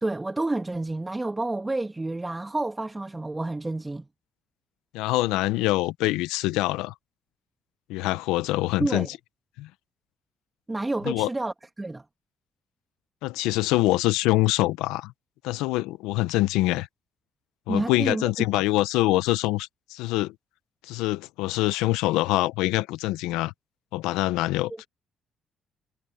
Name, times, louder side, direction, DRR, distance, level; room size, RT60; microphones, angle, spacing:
voice 1, 0.0-4.1 8.8-9.1 10.7-12.0 17.7-18.2 18.5-18.6, right 2 dB, 20° right, 1.5 m, -29 dB
voice 2, 4.9-6.9 7.9-9.1 9.6-9.7 11.1-11.3 13.2-15.1 15.4-16.9 17.7-20.3 20.9-23.5 23.9-24.9, left 18 dB, 85° left, 0.9 m, -25 dB
supercardioid pair, 60°, 0 cm